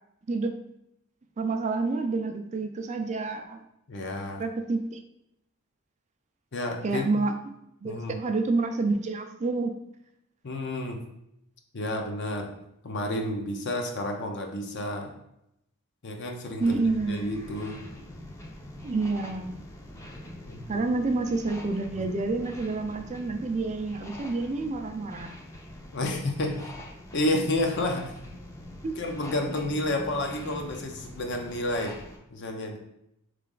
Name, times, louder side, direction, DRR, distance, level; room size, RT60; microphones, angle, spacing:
voice 1, 1.4-3.6 4.4-5.0 6.8-7.3 7.8-9.7 16.6-17.3 18.8-19.5 20.7-25.3 28.8-28.9, right 3 dB, 35° right, 6 dB, 0.4 m, -28 dB
voice 2, 3.9-4.4 6.5-7.1 7.8-8.1 10.4-11.0 11.7-12.5 12.8-15.1 16.0-16.8 17.1-17.8 20.5-20.8 22.0-22.1 25.9-26.6 27.1-28.1 29.0-32.0 32.3-32.8, left 1 dB, 55° left, 3 dB, 0.7 m, -30 dB
sound 1, 16.6-32.2, left 1 dB, 15° left, 0.6 m, -44 dB
4.0 x 3.3 x 3.8 m, 0.80 s
head